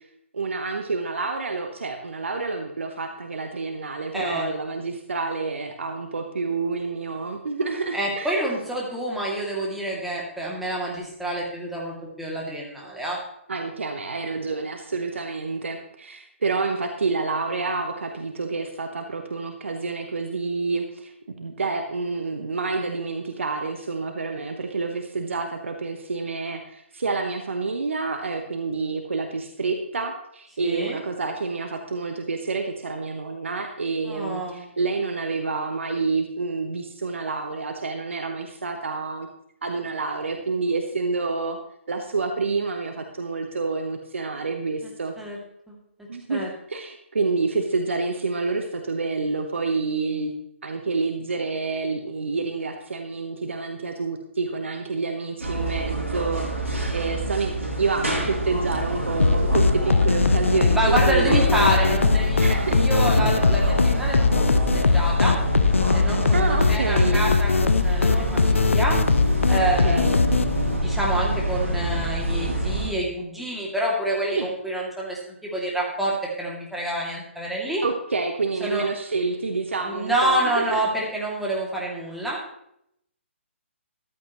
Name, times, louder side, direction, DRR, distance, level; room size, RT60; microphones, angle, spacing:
voice 1, 0.3-8.3 13.5-21.1 21.4-39.3 39.6-41.6 41.9-45.1 46.1-50.3 50.6-56.5 56.9-61.4 62.4-62.8 66.3-67.2 69.8-70.2 74.3-74.5 77.8-80.8, right 4 dB, 65° right, 4 dB, 1.3 m, -28 dB
voice 2, 4.1-4.5 7.9-13.2 30.6-31.0 34.0-34.7 45.2-45.4 45.7-45.8 46.3-46.5 60.7-64.4 64.9-65.4 65.9-69.0 69.5-77.8 78.6-78.9 79.8-82.4, right 1 dB, ahead, -4 dB, 2.6 m, -28 dB
sound 1, 55.4-72.9, right 1 dB, 85° right, 3.2 m, -26 dB
sound 2, 59.2-70.8, left 4 dB, 70° left, 0.6 m, -21 dB
14.5 x 11.5 x 3.1 m, 0.76 s
figure-of-eight pair, 135°, 7 cm